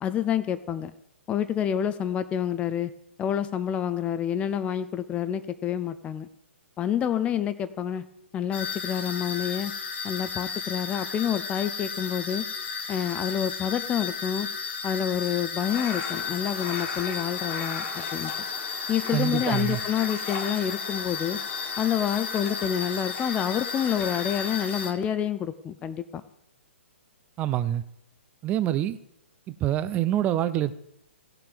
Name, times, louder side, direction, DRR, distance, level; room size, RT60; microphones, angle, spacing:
voice 1, 0.0-0.9 1.3-2.9 3.2-6.3 6.8-8.0 8.3-9.7 10.0-12.5 12.9-14.5 14.8-18.5 18.9-21.4 21.8-26.2, left 9 dB, 15° left, 0.6 m, -28 dB
sound 1, 8.5-24.9, left 5 dB, 60° left, 1.6 m, -34 dB
sound 2, 15.6-24.9, left 5 dB, 35° left, 1.8 m, -39 dB
voice 2, 19.1-19.8 27.4-27.8 28.4-29.0 29.5-30.7, right 12 dB, 20° right, 0.5 m, -26 dB
17.0 x 5.8 x 5.3 m
figure-of-eight pair, 125°, 7 cm